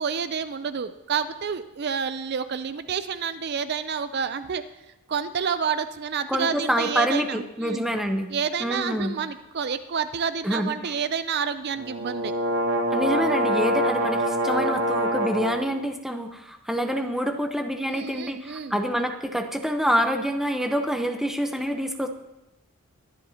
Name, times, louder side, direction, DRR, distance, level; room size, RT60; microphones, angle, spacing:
voice 1, 0.0-4.6 5.1-7.8 8.3-12.3 17.9-18.8, right 6 dB, 50° right, 12 dB, 0.4 m, -29 dB
voice 2, 6.3-8.3 8.6-9.1 10.4-10.9 12.9-22.1, equal, ahead, 5 dB, 0.8 m, -26 dB
sound 1, 11.8-15.7, right 1 dB, 70° right, 1.6 m, -25 dB
22.5 x 10.5 x 2.8 m, 0.93 s
head